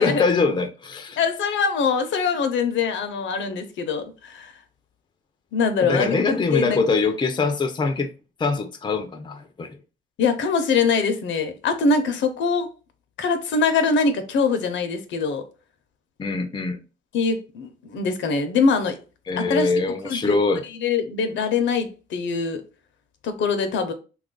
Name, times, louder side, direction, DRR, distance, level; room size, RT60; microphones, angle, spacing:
voice 1, 0.0-1.2 5.8-8.1 8.4-9.8 16.2-16.8 19.3-20.6, left 4 dB, 25° left, 0.5 m, -23 dB
voice 2, 1.2-4.5 5.5-6.8 10.2-12.7 13.2-15.4 17.1-19.0 19.4-19.7 20.0-20.4 20.8-22.6 23.2-23.9, left 5 dB, 70° left, 0.6 m, -23 dB
3.0 x 2.4 x 3.7 m
cardioid pair, 90°, 20 cm